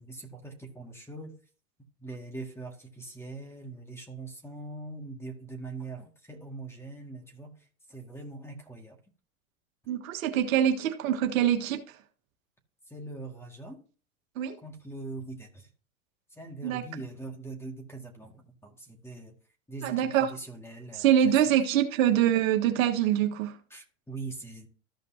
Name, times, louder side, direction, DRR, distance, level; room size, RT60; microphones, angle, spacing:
voice 1, 0.0-1.3 2.0-9.0 12.9-13.8 14.6-15.7 16.3-19.3 19.7-21.4 23.7-24.7, right 3 dB, 5° left, 2.0 m, -42 dB
voice 2, 9.9-12.0 14.3-14.6 16.6-16.8 19.8-20.3 20.9-23.6, right 10 dB, 75° right, 1.6 m, -25 dB
14.0 x 5.2 x 2.8 m
hypercardioid pair, 120°, 41 cm